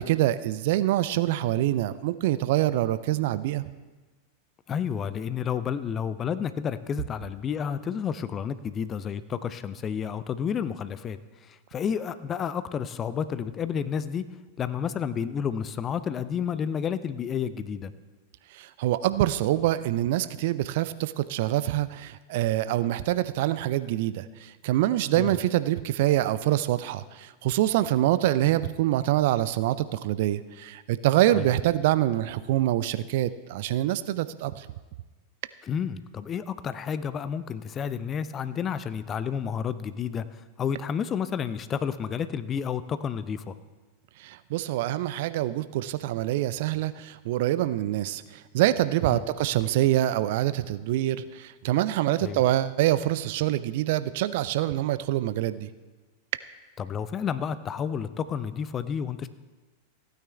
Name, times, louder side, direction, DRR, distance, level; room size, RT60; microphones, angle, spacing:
voice 1, 0.0-3.6 18.5-34.7 44.2-55.7, right 14 dB, 50° right, 15 dB, 0.4 m, -25 dB
voice 2, 4.7-11.2 11.5-14.2 14.6-17.9 25.1-25.3 31.3-31.5 35.6-40.3 40.6-43.5 49.1-49.2 52.2-52.4 56.8-59.3, left 7 dB, 25° left, 13 dB, 0.5 m, -30 dB
15.5 x 9.2 x 3.4 m, 1.2 s
figure-of-eight pair, 90°, 0 cm